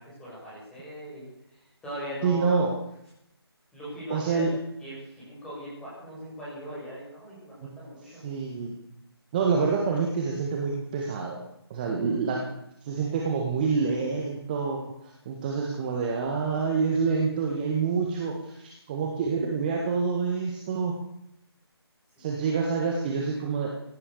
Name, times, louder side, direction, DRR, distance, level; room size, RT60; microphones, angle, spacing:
voice 1, 0.0-2.6 3.7-4.5 4.8-8.2 11.8-12.2 22.2-22.6, equal, 5° left, -8 dB, 7.5 m, -40 dB
voice 2, 2.2-2.7 4.1-4.5 7.6-7.7 8.2-8.8 9.3-11.4 11.7-12.4 12.8-20.9 22.2-23.7, right 5 dB, 20° right, 0 dB, 1.8 m, -27 dB
17.5 x 11.0 x 7.0 m, 0.80 s
figure-of-eight pair, 155°, 14 cm